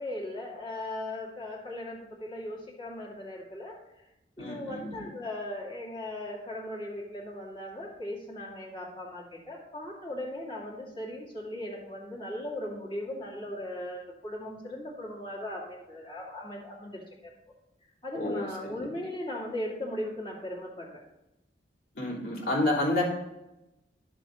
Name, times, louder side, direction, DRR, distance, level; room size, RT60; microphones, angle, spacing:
voice 1, 0.0-4.0 4.4-17.3 18.0-21.0, left 1 dB, 30° left, -4 dB, 2.4 m, -38 dB
voice 2, 4.4-5.0 18.1-18.9 21.9-23.0, left 2 dB, 60° left, -4 dB, 3.4 m, -30 dB
12.0 x 7.3 x 2.6 m, 0.92 s
head